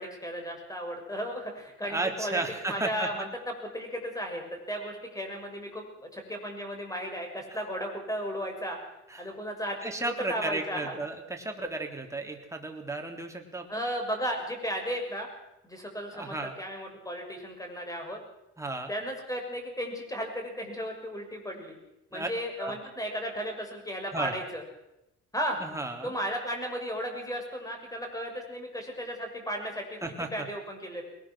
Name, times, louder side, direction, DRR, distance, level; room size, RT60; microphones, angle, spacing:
voice 1, 0.0-3.3 3.6-8.8 9.2-11.0 13.7-15.3 15.6-18.2 18.9-21.8 22.1-24.6 25.3-25.6 26.0-30.0 30.3-31.0, equal, 10° left, 3 dB, 6.4 m, -35 dB
voice 2, 1.8-3.2 7.5-7.6 9.1-9.3 9.8-13.8 16.1-16.6 18.6-18.9 22.1-22.3 22.6-22.7 24.1-24.3 25.6-26.1 30.0-30.5, right 2 dB, 10° right, 2 dB, 3.5 m, -34 dB
21.5 x 19.0 x 6.3 m, 0.88 s
cardioid pair, 85°, 30 cm